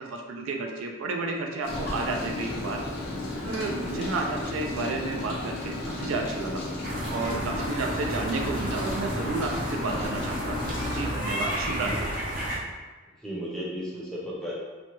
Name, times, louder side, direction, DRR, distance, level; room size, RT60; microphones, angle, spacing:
voice 1, 0.0-2.8 3.4-6.6 7.1-10.6 10.9-12.1, right 3 dB, 75° right, 2 dB, 0.4 m, -31 dB
Rain, 1.6-11.1, left 2 dB, 50° left, 0.7 m, -34 dB
sound 1, 6.8-12.6, equal, 40° right, 0.7 m, -32 dB
voice 2, 9.9-10.2 11.8-12.0 13.2-14.6, equal, 5° left, -6 dB, 0.6 m, -35 dB
2.9 x 2.2 x 3.0 m, 1.3 s
head